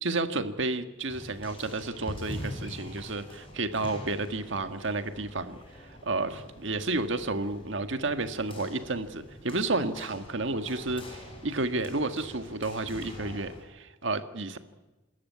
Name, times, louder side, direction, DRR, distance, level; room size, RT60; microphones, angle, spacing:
voice 1, 0.0-14.6, right 2 dB, 65° right, 8 dB, 1.6 m, -31 dB
sound 1, 1.1-13.6, left 1 dB, 25° left, 5.7 m, -44 dB
27.5 x 13.5 x 9.5 m, 1.1 s
head